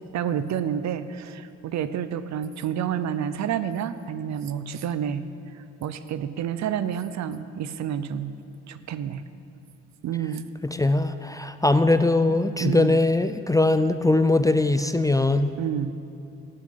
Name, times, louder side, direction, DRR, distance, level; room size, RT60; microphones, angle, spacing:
voice 1, 0.1-5.2 5.8-8.3 8.7-9.2 10.0-10.5 12.6-13.0 15.6-15.9, right 9 dB, 65° right, 13 dB, 0.6 m, -29 dB
voice 2, 10.7-15.5, left 2 dB, 10° left, 10 dB, 0.4 m, -21 dB
12.5 x 9.7 x 5.7 m, 2.8 s
cardioid pair, 90°, 30 cm